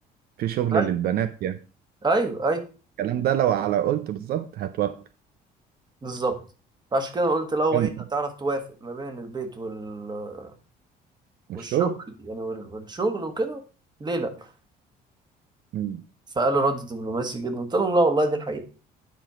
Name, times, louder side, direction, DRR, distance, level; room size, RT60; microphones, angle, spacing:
voice 1, 0.4-1.6 3.0-4.9 7.7-7.9 11.5-11.9 15.7-16.0, right 11 dB, 65° right, 0.6 m, -25 dB
voice 2, 2.0-2.6 6.0-6.4 6.9-10.5 11.5-11.9 12.3-13.6 14.0-14.3 16.3-18.6, right 2 dB, 25° right, 1.6 m, -26 dB
10.0 x 4.5 x 4.9 m
cardioid pair, 110°, 17 cm